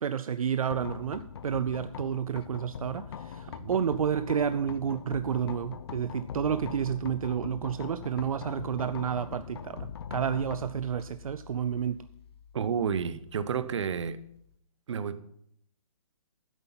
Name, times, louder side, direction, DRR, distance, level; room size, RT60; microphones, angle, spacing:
voice 1, 0.0-12.0, right 8 dB, 75° right, 0.5 m, -30 dB
sound 1, 0.7-14.5, left 8 dB, 45° left, 0.7 m, -43 dB
voice 2, 12.5-14.2 14.9-15.2, right 7 dB, 55° right, 0.8 m, -31 dB
11.0 x 8.3 x 5.8 m
hypercardioid pair, 155°, 18 cm